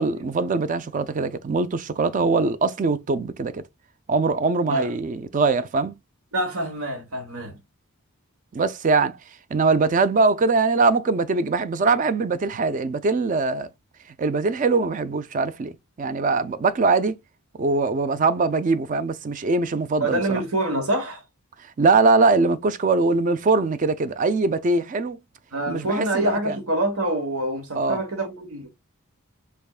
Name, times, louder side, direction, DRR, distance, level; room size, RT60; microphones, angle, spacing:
voice 1, 0.0-3.6 4.1-6.0 8.5-9.2 9.5-13.7 14.2-15.7 16.0-17.1 17.6-20.4 21.6-25.2 25.7-26.6 27.8-28.0, right 3 dB, 35° right, 0.3 m, -22 dB
voice 2, 6.3-7.6 20.0-21.2 25.5-28.7, right 1 dB, 75° right, 1.3 m, -26 dB
3.4 x 3.4 x 2.3 m
head